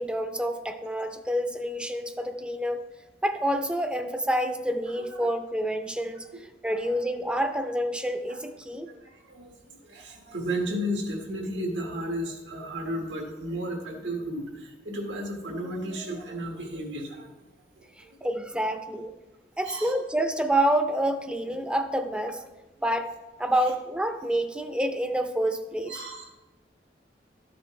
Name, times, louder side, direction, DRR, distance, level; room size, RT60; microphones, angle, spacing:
voice 1, 0.0-2.8 3.2-8.9 18.0-19.2 19.6-22.5 22.8-23.1 23.4-26.0, right 1 dB, 5° right, 7 dB, 0.5 m, -28 dB
voice 2, 4.9-5.3 6.6-7.0 8.3-8.4 8.9-17.3 17.8-18.1 19.6-19.9 25.9-26.3, equal, 85° right, 2 dB, 1.6 m, -34 dB
12.5 x 7.7 x 3.2 m, 1.1 s
head